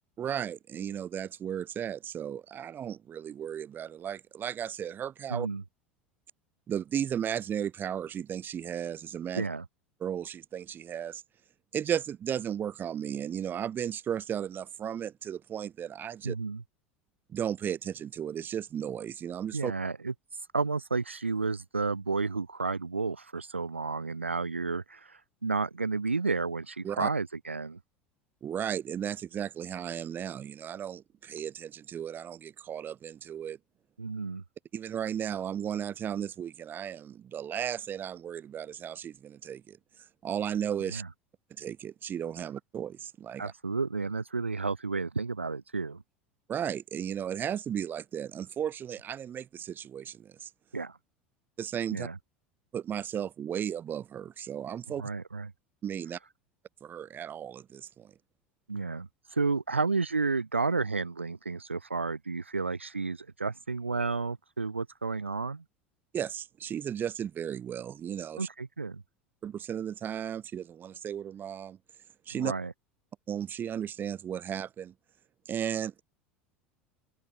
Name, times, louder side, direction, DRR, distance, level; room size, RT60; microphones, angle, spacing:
voice 1, 0.2-5.5 6.7-9.5 10.0-11.2 11.7-16.4 17.3-19.7 26.8-27.1 28.4-33.6 34.7-39.8 40.2-41.0 41.6-43.5 46.5-50.5 51.6-52.1 52.7-55.0 55.8-56.2 56.8-58.1 66.1-68.5 69.4-71.8 72.3-72.5 73.3-74.9 75.5-76.0, right 9 dB, 30° right, 5.1 m, -35 dB
voice 2, 5.3-5.6 9.3-9.7 16.2-16.6 19.5-20.1 20.5-27.8 34.0-34.4 40.8-41.1 43.4-46.0 50.7-51.0 51.9-52.2 55.0-55.5 58.7-65.6 68.4-69.0 72.3-72.7, right 4 dB, 80° right, 7.8 m, -32 dB
open air
figure-of-eight pair, 75°, 6 cm